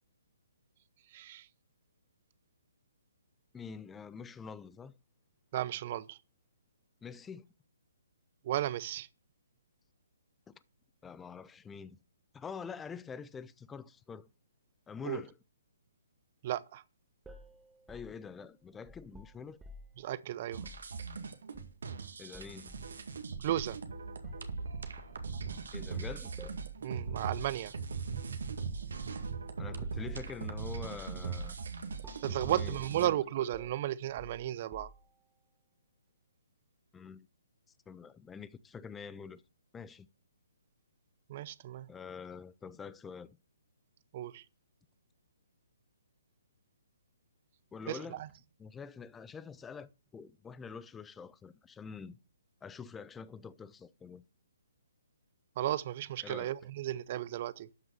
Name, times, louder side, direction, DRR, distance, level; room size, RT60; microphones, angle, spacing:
voice 1, 1.1-1.5 5.5-6.2 8.4-9.1 15.0-15.2 16.4-16.8 20.0-20.6 23.4-23.8 26.8-27.7 32.2-34.9 41.3-41.9 44.1-44.4 47.9-48.3 55.6-57.7, right 13 dB, 40° right, 0.8 m, -34 dB
voice 2, 3.5-4.9 7.0-7.5 10.5-10.6 11.0-12.0 12.3-14.3 14.9-15.3 17.9-19.6 22.2-22.8 25.7-26.3 29.6-31.6 32.4-33.2 36.9-37.3 37.9-39.4 39.7-40.1 41.9-43.4 47.7-48.2 48.6-52.2 52.6-54.2 56.2-56.5, left 6 dB, 10° left, 0.6 m, -46 dB
sound 1, 17.2-20.0 20.6-20.9 21.5-22.0 22.3-22.9 23.5-23.7 24.2-24.6 25.0-25.8 26.4-26.7 27.0-27.3 27.5-27.8 28.6-29.2 29.8-30.6 30.9-31.2 31.5-31.7 32.0-32.4 32.8-33.1 33.5-35.2, left 1 dB, 10° right, 1.4 m, -53 dB
sound 2, 20.5-33.1, right 5 dB, 65° right, 2.0 m, -40 dB
12.5 x 6.1 x 6.5 m
figure-of-eight pair, 130°, 0 cm